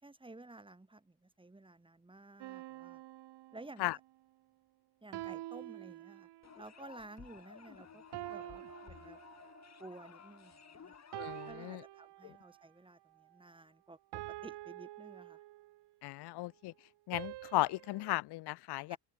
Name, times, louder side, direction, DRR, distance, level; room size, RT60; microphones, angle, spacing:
voice 1, 0.0-3.0 3.5-4.0 5.0-6.3 6.6-8.0 8.3-9.2 9.8-11.0 11.5-15.4 18.9-19.0, right 2 dB, 10° right, 4.1 m, -53 dB
sound 1, 2.4-4.1 5.1-6.6 8.1-9.8 11.1-12.6 14.1-15.9 17.1-18.2, right 17 dB, 70° right, 1.4 m, -47 dB
sound 2, 6.4-11.8, left 7 dB, 40° left, 3.7 m, -55 dB
voice 2, 11.1-11.8 12.2-12.3 16.0-16.7 17.1-19.0, left 19 dB, 65° left, 0.8 m, -36 dB
cardioid pair, 90°, 42 cm